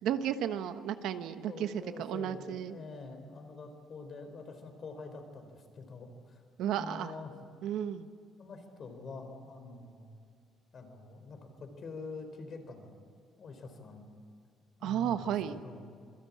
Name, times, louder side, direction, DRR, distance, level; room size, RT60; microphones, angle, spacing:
voice 1, 0.0-2.7 6.6-7.1 7.6-8.1 14.8-15.6, right 10 dB, 70° right, 9 dB, 1.2 m, -33 dB
voice 2, 1.1-7.3 8.4-10.1 10.7-13.0 13.4-14.1 14.8-15.9, left 3 dB, 35° left, 6 dB, 4.1 m, -46 dB
26.5 x 23.0 x 8.6 m, 2.2 s
cardioid pair, 170°, 0 cm